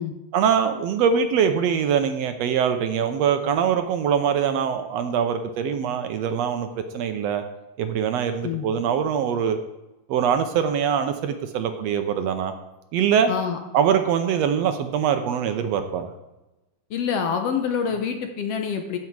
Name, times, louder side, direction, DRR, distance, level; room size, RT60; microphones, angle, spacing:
voice 1, 0.3-7.4 7.8-9.6 10.1-12.5 12.9-13.3 13.7-16.1, right 7 dB, 75° right, 8 dB, 1.7 m, -23 dB
voice 2, 13.3-13.6 16.9-19.0, left 7 dB, 65° left, 5 dB, 1.7 m, -26 dB
15.0 x 6.2 x 4.7 m, 1.0 s
omnidirectional pair, 3.3 m